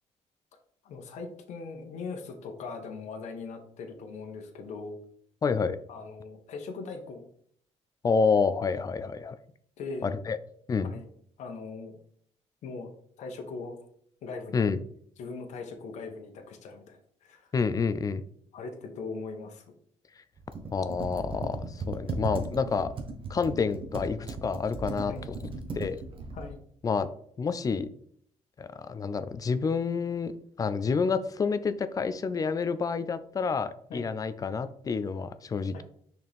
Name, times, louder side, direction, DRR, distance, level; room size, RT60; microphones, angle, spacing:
voice 1, 0.8-5.0 5.9-7.3 9.8-10.3 10.8-11.1 11.4-12.0 12.6-12.9 13.2-13.8 14.2-14.6 15.2-17.5 18.5-19.7 25.1-25.3 26.3-26.6 33.9-34.1 35.7-35.8, left 4 dB, 75° left, 3 dB, 1.2 m, -40 dB
voice 2, 5.4-5.8 8.0-9.4 10.0-10.4 10.7-10.9 14.5-14.8 17.5-18.2 20.7-22.9 23.3-25.1 25.7-26.0 26.8-27.1 27.4-27.9 28.6-30.3 30.6-35.8, left 5 dB, 30° left, 12 dB, 0.5 m, -28 dB
Computer keyboard, 20.4-26.5, right 3 dB, 45° right, 1.1 m, -37 dB
6.2 x 4.4 x 3.6 m, 0.63 s
cardioid pair, 130°, 12 cm